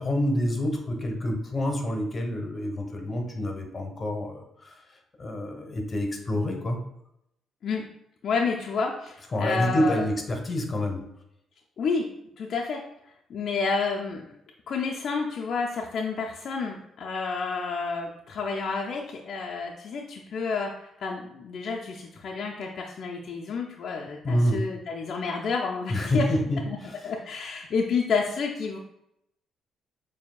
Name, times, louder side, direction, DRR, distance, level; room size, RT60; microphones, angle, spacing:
voice 1, 0.0-4.8 5.2-6.8 9.3-11.0 24.2-24.7 25.9-27.0, equal, 30° left, 2 dB, 1.1 m, -27 dB
voice 2, 8.2-10.0 11.8-12.1 12.4-12.8 13.3-14.4 14.7-26.3 26.7-26.8 27.0-28.8, left 4 dB, 60° left, -1 dB, 0.5 m, -30 dB
6.8 x 2.7 x 2.3 m, 0.79 s
cardioid pair, 90°, 0 cm